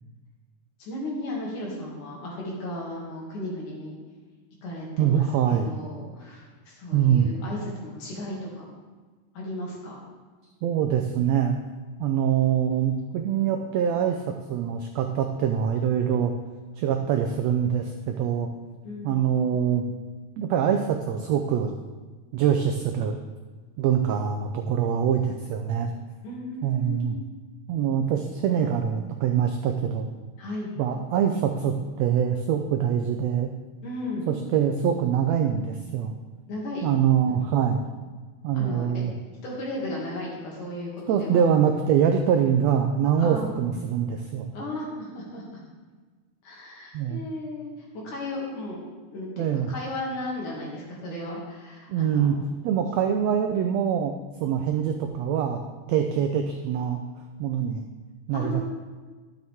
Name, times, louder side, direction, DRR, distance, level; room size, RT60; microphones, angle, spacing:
voice 1, 0.8-4.0 4.6-8.7 9.3-10.0 18.8-19.3 26.2-27.1 30.4-30.7 33.8-34.3 36.5-36.9 37.3-37.5 38.5-39.0 39.4-41.4 43.2-43.5 44.5-45.6 46.4-47.7 48.0-48.8 49.1-52.3 56.1-56.2 58.3-58.6, left 1 dB, 75° left, -4 dB, 3.8 m, -35 dB
voice 2, 5.0-5.7 6.9-7.3 10.6-11.6 12.0-14.2 14.5-16.3 16.8-18.5 19.0-19.9 20.4-21.7 22.3-23.2 23.8-25.9 26.6-27.2 27.7-30.1 30.8-33.5 34.3-36.1 36.8-37.9 38.4-39.1 41.1-44.5 46.9-47.2 49.4-49.7 51.9-52.4 52.6-54.1 54.4-55.6 55.9-57.0 57.4-57.8 58.3-58.6, right 8 dB, 85° right, 5 dB, 1.5 m, -24 dB
11.5 x 7.8 x 3.6 m, 1.4 s
omnidirectional pair, 3.7 m